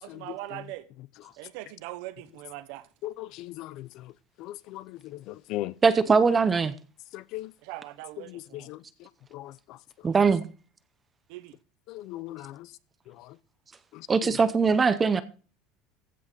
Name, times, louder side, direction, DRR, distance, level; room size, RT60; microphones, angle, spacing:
voice 1, 0.0-0.8 1.4-2.9 7.6-8.7 11.3-11.5, right 16 dB, 65° right, 1.1 m, -41 dB
voice 2, 3.0-3.9 4.4-5.0 5.3-5.7 7.1-7.5 8.3-8.8 9.3-9.5 11.9-12.7, left 15 dB, 45° left, 0.6 m, -37 dB
voice 3, 5.8-6.7 10.0-10.4 14.1-15.2, right 5 dB, 15° right, 0.7 m, -21 dB
15.5 x 6.3 x 5.2 m
cardioid pair, 170°, 0 cm